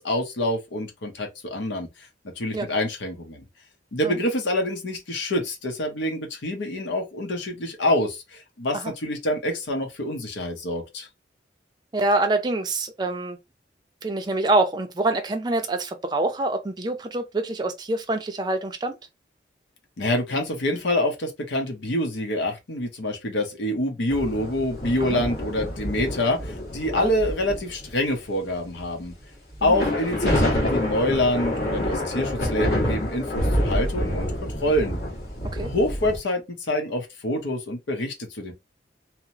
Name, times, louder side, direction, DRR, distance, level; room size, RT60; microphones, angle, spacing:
voice 1, 0.0-1.9 2.4-3.4 3.9-11.1 20.0-29.1 29.6-35.0 35.6-38.5, left 1 dB, 85° left, 0.7 m, -26 dB
voice 2, 11.9-13.4 14.0-19.0 25.0-25.2 27.0-27.1 29.6-29.8 35.5-35.7, right 2 dB, 25° right, 0.4 m, -25 dB
sound 1, 24.1-28.0 28.7-28.8 29.5-36.2, left 1 dB, 55° left, 1.4 m, -27 dB
2.8 x 2.0 x 2.7 m
head